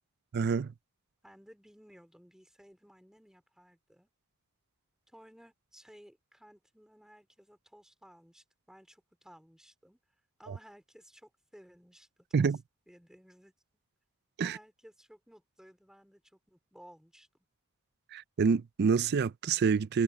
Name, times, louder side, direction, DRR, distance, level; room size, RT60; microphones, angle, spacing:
voice 1, 0.3-0.7 10.5-10.6 12.3-12.6 14.4-14.6 18.1-20.0, right 5 dB, 50° right, 0.4 m, -27 dB
voice 2, 1.2-4.1 5.1-10.0 10.4-12.1 12.4-12.5 12.9-13.5 14.4-17.3, equal, 5° right, 3.7 m, -57 dB
head